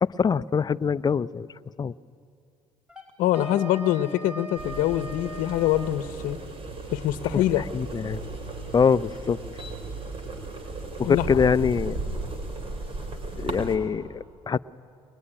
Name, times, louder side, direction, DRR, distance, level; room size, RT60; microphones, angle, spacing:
voice 1, 0.0-1.5 1.8-1.9 7.3-8.2 8.7-9.4 11.0-12.0 13.4-14.6, left 6 dB, 30° left, 15 dB, 0.6 m, -24 dB
Wind instrument woodwind instrument, 2.9-6.0, right 1 dB, 10° right, 4.6 m, -40 dB
voice 2, 3.2-6.4 6.9-7.6 11.0-11.3, left 13 dB, 75° left, 12 dB, 0.9 m, -24 dB
sound 1, 4.6-13.8, right 2 dB, 40° right, 4.2 m, -35 dB
22.0 x 21.5 x 10.0 m, 2.3 s
supercardioid pair, 80°, 14 cm